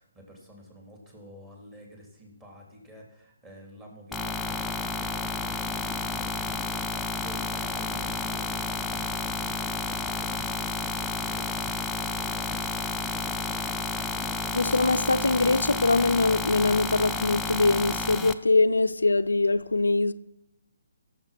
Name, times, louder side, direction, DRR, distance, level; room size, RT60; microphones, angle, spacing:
voice 1, 0.0-6.6 7.2-11.5 11.9-12.9, equal, 15° right, 3.5 m, -49 dB
sound 1, 4.1-18.3, left 3 dB, 5° left, 0.6 m, -31 dB
voice 2, 14.5-20.1, left 3 dB, 85° left, 0.5 m, -23 dB
16.0 x 7.4 x 6.0 m
figure-of-eight pair, 145°, 0 cm